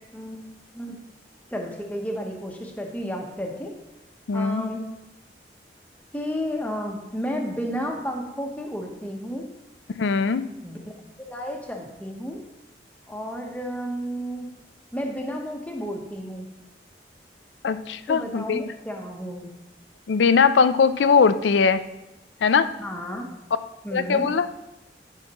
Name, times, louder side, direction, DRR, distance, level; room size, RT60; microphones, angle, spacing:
voice 1, 1.5-3.7 4.3-4.8 6.1-9.5 10.6-10.8 11.3-12.4 13.1-14.5 14.9-16.5 18.1-19.5 22.8-23.3 23.8-24.3, equal, 10° left, 1 dB, 0.9 m, -32 dB
voice 2, 4.3-4.7 10.0-10.5 17.6-18.6 20.1-21.8 22.4-22.7 23.9-24.5, left 5 dB, 85° left, 13 dB, 0.4 m, -20 dB
10.5 x 5.8 x 3.0 m, 0.96 s
head